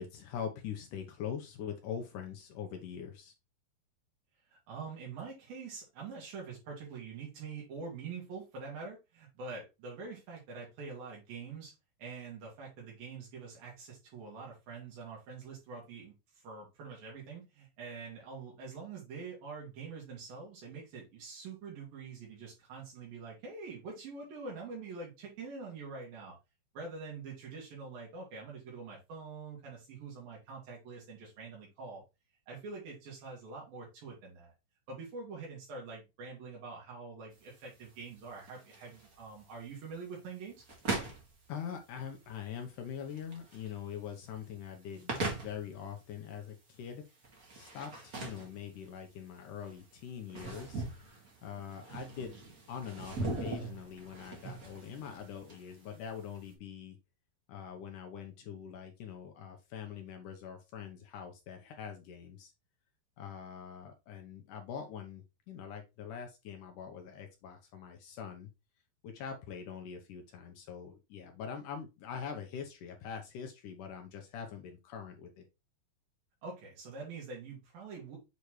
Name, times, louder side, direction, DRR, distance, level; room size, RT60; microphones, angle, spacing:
voice 1, 0.0-3.3 41.5-47.0 47.5-50.8 51.4-52.3 52.7-57.0 57.5-62.5 63.2-68.5 69.0-75.4, left 7 dB, 70° left, 4 dB, 2.2 m, -43 dB
voice 2, 4.5-11.7 12.0-26.4 26.7-32.0 32.5-34.5 34.9-40.6 76.4-78.2, right 4 dB, 75° right, -2 dB, 3.9 m, -45 dB
sound 1, 37.3-56.5, right 3 dB, 35° right, 1.5 m, -42 dB
8.2 x 4.0 x 3.2 m, 0.25 s
omnidirectional pair, 4.2 m